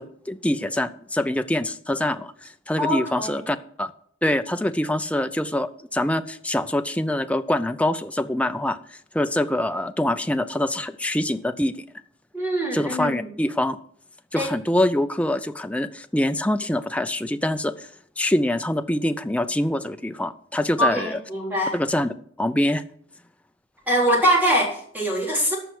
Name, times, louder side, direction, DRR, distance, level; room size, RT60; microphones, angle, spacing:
voice 1, 0.0-3.9 4.2-11.7 12.7-13.8 14.3-17.9 18.2-21.2 21.7-22.1 22.4-22.8, left 1 dB, 5° left, 8 dB, 0.5 m, -25 dB
voice 2, 2.8-3.3 12.3-13.2 14.4-14.5 20.8-21.8 23.9-25.6, equal, 10° right, -2 dB, 3.9 m, -23 dB
14.0 x 5.7 x 6.4 m, 0.62 s
head